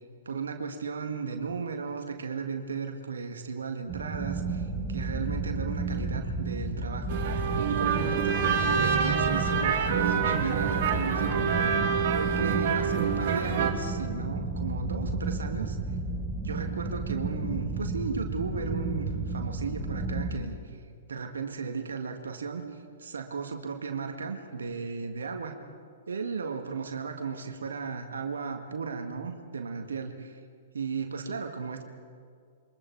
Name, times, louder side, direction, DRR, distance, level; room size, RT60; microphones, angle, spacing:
voice 1, 0.3-7.2 7.7-11.6 12.1-15.8 16.4-20.8 21.1-25.6 26.1-30.4 30.7-31.8, right 5 dB, 75° right, 5 dB, 1.8 m, -35 dB
sound 1, 3.9-20.4, right 3 dB, 10° right, 3.8 m, -32 dB
sound 2, 7.1-13.7, right 6 dB, 50° right, 2.6 m, -27 dB
28.0 x 23.5 x 4.7 m, 2.1 s
figure-of-eight pair, 110°, 0 cm